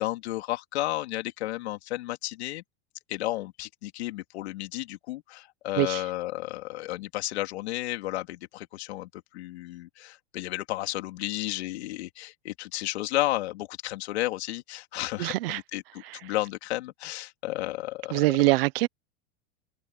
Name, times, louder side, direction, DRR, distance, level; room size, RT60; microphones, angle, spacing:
voice 1, 0.0-2.6 3.1-18.3, left 16 dB, 80° left, 3.4 m, -33 dB
voice 2, 15.2-15.6 16.0-16.2 18.1-18.9, right 22 dB, 60° right, 0.9 m, -24 dB
supercardioid pair, 170°, 32 cm